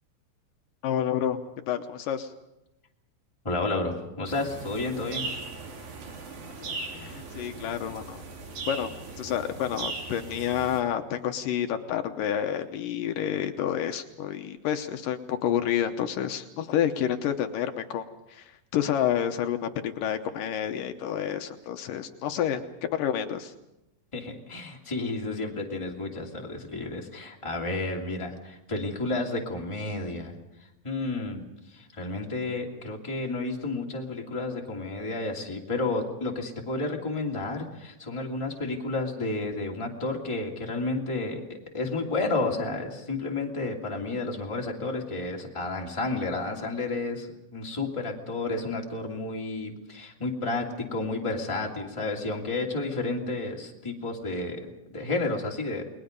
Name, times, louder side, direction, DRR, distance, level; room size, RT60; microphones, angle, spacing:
voice 1, 0.8-1.4 1.7-2.3 6.7-8.2 8.7-23.5, left 9 dB, 75° left, 6 dB, 2.5 m, -29 dB
voice 2, 3.4-5.3 24.1-30.3 30.8-55.8, left 2 dB, 10° left, -1 dB, 2.3 m, -31 dB
sound 1, 4.3-10.8, right 4 dB, 75° right, 4.9 m, -38 dB
29.5 x 21.0 x 5.3 m, 0.89 s
omnidirectional pair, 4.1 m